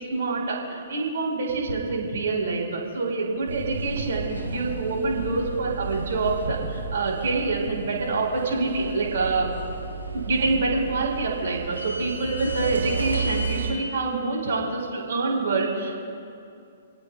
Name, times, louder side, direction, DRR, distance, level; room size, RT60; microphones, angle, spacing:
voice 1, 0.0-9.5 10.1-16.0, right 3 dB, 55° right, 0 dB, 4.4 m, -26 dB
sound 1, 3.5-13.7, right 3 dB, 75° right, 4.5 m, -32 dB
29.5 x 17.5 x 2.4 m, 2.4 s
figure-of-eight pair, 115°, 0 cm